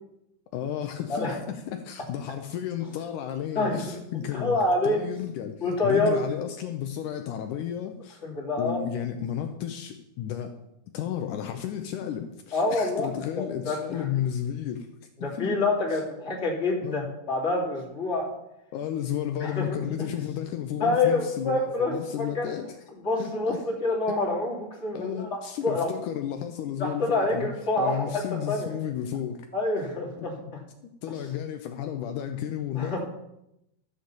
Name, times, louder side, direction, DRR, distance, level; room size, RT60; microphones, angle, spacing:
voice 1, 0.5-8.2 8.6-10.6 10.9-14.9 15.2-15.5 15.9-16.0 16.8-17.1 18.7-22.7 23.2-23.6 24.9-27.5 27.8-29.5 30.2-30.3 31.0-33.0, left 10 dB, 85° left, 6 dB, 1.8 m, -33 dB
voice 2, 3.5-3.9 4.3-5.0 5.6-6.2 8.2-8.9 12.5-13.1 13.4-14.1 15.2-18.3 19.4-19.8 20.8-22.5 23.0-25.9 26.8-28.7 29.5-30.6 32.7-33.0, left 2 dB, 20° left, -3 dB, 2.9 m, -27 dB
13.0 x 6.5 x 7.1 m, 0.83 s
omnidirectional pair, 4.5 m